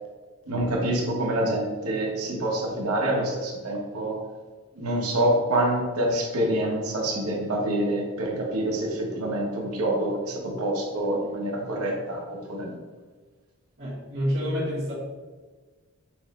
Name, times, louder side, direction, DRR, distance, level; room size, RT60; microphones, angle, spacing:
voice 1, 0.5-4.2 4.8-12.8, right 1 dB, 90° right, -1 dB, 1.0 m, -26 dB
voice 2, 13.8-14.9, equal, 50° right, -8 dB, 1.3 m, -28 dB
6.0 x 2.0 x 4.2 m, 1.4 s
head